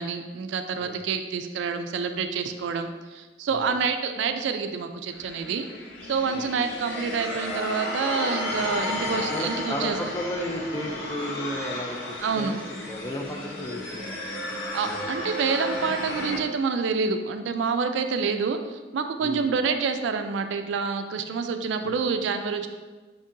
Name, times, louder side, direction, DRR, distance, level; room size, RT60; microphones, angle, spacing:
voice 1, 0.0-5.7 6.0-10.0 12.2-12.6 14.7-22.7, right 5 dB, 65° right, 7 dB, 0.3 m, -27 dB
sound 1, 5.1-16.4, left 1 dB, 70° left, 0.8 m, -33 dB
voice 2, 9.3-15.1 19.2-19.6 21.8-22.0, equal, 15° left, 1 dB, 0.4 m, -34 dB
5.2 x 2.7 x 3.6 m, 1.3 s
head